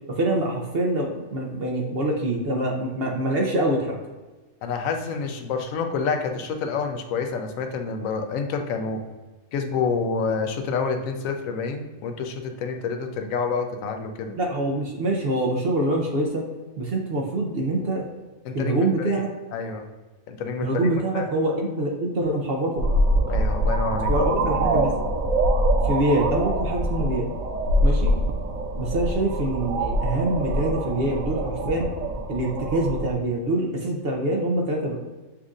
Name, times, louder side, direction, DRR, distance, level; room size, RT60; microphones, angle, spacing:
voice 1, 0.1-4.0 14.3-16.4 16.8-18.0 18.5-19.3 20.6-22.8 24.1-24.9 25.8-27.3 27.8-28.1 28.8-31.9 32.3-35.0, right 1 dB, 55° right, 0 dB, 0.7 m, -25 dB
voice 2, 4.6-9.0 9.5-14.3 18.4-19.2 19.5-19.8 20.3-21.3 23.3-24.1, left 5 dB, 75° left, 5 dB, 0.9 m, -28 dB
sound 1, 22.8-33.2, right 1 dB, 80° right, 1.0 m, -24 dB
7.1 x 2.6 x 2.4 m, 1.2 s
omnidirectional pair, 1.4 m